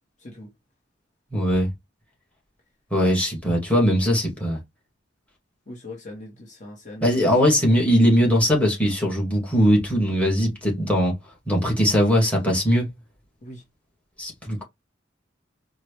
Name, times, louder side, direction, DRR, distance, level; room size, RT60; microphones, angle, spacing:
voice 1, 0.2-0.5 5.7-7.3 13.4-13.6, left 2 dB, 40° left, 1.3 m, -40 dB
voice 2, 1.3-1.7 2.9-4.6 7.0-11.1 11.5-12.9 14.2-14.6, equal, 5° left, 2.0 m, -20 dB
4.7 x 2.4 x 3.3 m
head